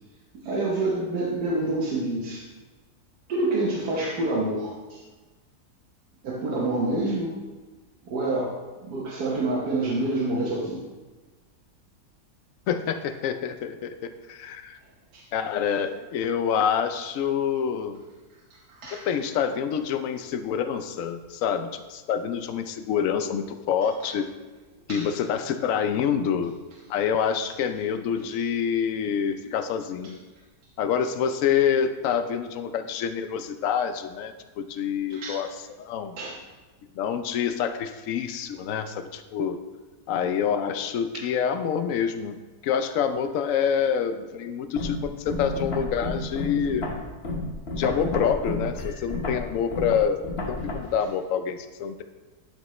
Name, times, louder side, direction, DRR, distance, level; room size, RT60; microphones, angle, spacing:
voice 1, 0.4-2.5 3.3-5.0 6.2-7.3 8.1-10.8 15.1-15.2 18.7-19.0 24.9-25.1 35.1-35.3 36.2-36.4, right 2 dB, 85° right, -5 dB, 1.7 m, -27 dB
voice 2, 12.7-14.8 15.3-18.0 18.9-24.3 24.9-26.5 26.9-30.2 30.8-35.5 35.8-36.2 37.0-39.6 40.1-42.4 42.6-46.9 47.7-52.0, left 7 dB, 65° left, 9 dB, 0.9 m, -27 dB
sound 1, 44.8-50.7, left 2 dB, 45° left, 1.3 m, -31 dB
12.0 x 5.3 x 3.1 m, 1.3 s
omnidirectional pair, 1.7 m